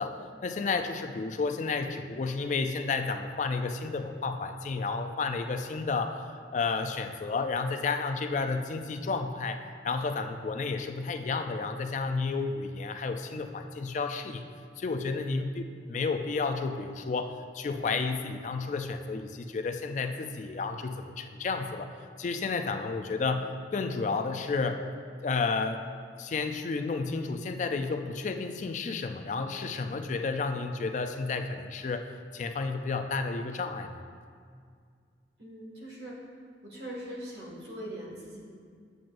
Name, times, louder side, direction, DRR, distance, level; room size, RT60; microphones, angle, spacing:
voice 1, 0.0-9.6 9.8-14.4 14.8-21.9 22.2-24.8 25.2-25.9 26.2-34.0, left 4 dB, 40° left, 7 dB, 0.3 m, -31 dB
voice 2, 35.4-36.2 36.6-38.4, right 1 dB, 65° right, -4 dB, 1.9 m, -41 dB
9.3 x 7.4 x 2.5 m, 2.1 s
head